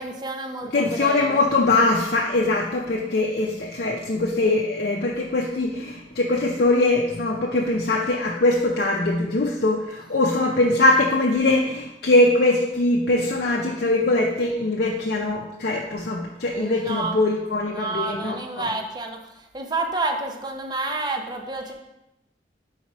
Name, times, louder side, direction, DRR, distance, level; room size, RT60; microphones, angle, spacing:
voice 1, 0.0-1.5 16.5-17.2 17.7-21.7, right 3 dB, 25° right, 3 dB, 0.6 m, -29 dB
voice 2, 0.7-18.7, left 2 dB, 60° left, -1 dB, 0.6 m, -22 dB
4.9 x 4.7 x 4.2 m, 0.90 s
head